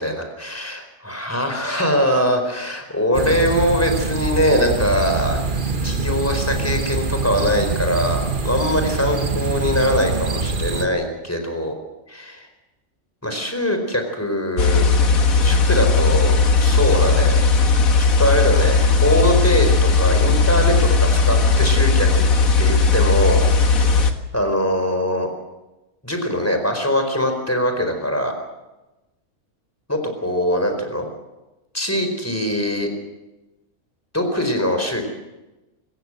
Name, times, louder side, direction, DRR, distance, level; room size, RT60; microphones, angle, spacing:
voice 1, 0.0-5.4 5.8-11.7 12.1-12.5 13.2-14.9 15.4-16.3 16.6-17.4 18.2-22.2 22.6-23.5 23.9-25.3 26.0-28.3 29.9-31.1 31.7-32.9 34.1-35.1, equal, 10° left, 5 dB, 4.5 m, -22 dB
sound 1, 3.1-10.8, right 3 dB, 35° right, 1.5 m, -24 dB
sound 2, 14.6-24.1, left 4 dB, 75° left, 2.0 m, -16 dB
26.5 x 15.0 x 7.8 m, 1.0 s
omnidirectional pair, 1.5 m